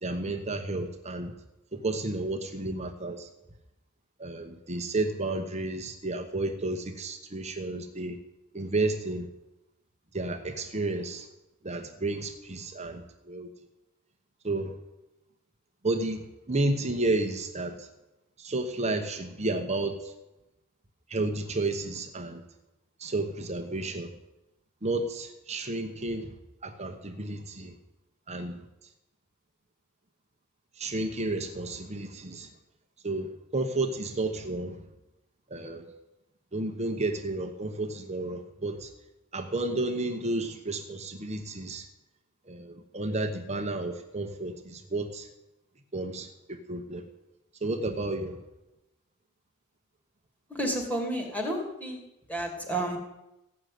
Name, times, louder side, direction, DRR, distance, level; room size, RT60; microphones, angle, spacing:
voice 1, 0.0-1.3 1.7-3.3 4.2-8.2 8.5-9.3 10.1-11.3 11.6-13.5 14.4-14.7 15.8-17.9 18.4-20.1 21.1-22.4 23.0-24.1 24.8-26.3 26.6-27.7 28.3-28.6 30.8-32.5 33.0-34.7 35.5-35.9 36.5-38.9 39.3-41.9 42.4-45.3 45.9-47.0 47.6-48.3, right 2 dB, 30° right, 5 dB, 1.1 m, -32 dB
voice 2, 50.5-52.0 52.3-53.0, right 1 dB, 5° left, 1 dB, 2.6 m, -31 dB
15.5 x 6.5 x 9.4 m, 0.96 s
head